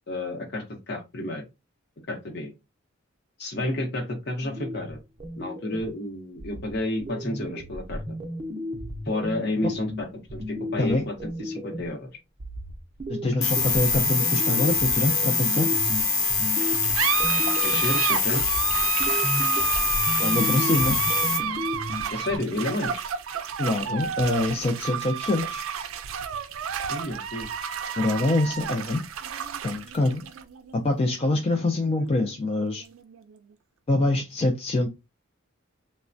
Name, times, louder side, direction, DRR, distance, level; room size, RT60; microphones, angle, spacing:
voice 1, 0.1-1.4 2.1-2.5 3.4-5.0 5.4-8.0 9.1-12.1 17.3-18.6 22.1-23.0 26.9-27.5, left 1 dB, 55° left, 3 dB, 0.8 m, -31 dB
sound 1, 4.4-6.0 6.4-12.0 12.4-18.0 18.4-22.4, equal, 30° right, 0.5 m, -34 dB
voice 2, 13.1-15.7 20.2-21.0 23.6-25.6 28.0-29.0 29.6-30.2 30.7-32.8 33.9-34.9, left 2 dB, 30° left, 2 dB, 0.3 m, -25 dB
sound 2, 13.4-21.4, left 4 dB, 85° left, 0.9 m, -24 dB
sound 3, 16.5-33.5, right 8 dB, 85° right, 0.4 m, -31 dB
3.2 x 2.1 x 2.5 m, 0.24 s
head